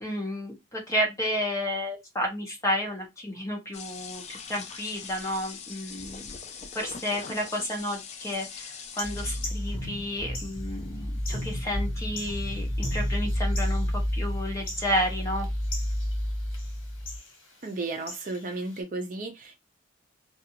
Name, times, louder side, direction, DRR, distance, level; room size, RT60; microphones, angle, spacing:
voice 1, 0.0-6.4 6.7-15.5, equal, 15° left, 0.7 m, -31 dB
sound 1, 3.7-9.9, left 6 dB, 30° left, 0.3 m, -42 dB
sound 2, 8.8-18.8, left 2 dB, 75° left, 1.3 m, -44 dB
sound 3, 9.0-17.2, equal, 15° right, 1.2 m, -30 dB
voice 2, 17.6-19.6, right 3 dB, 40° right, 0.5 m, -34 dB
2.5 x 2.4 x 2.8 m
head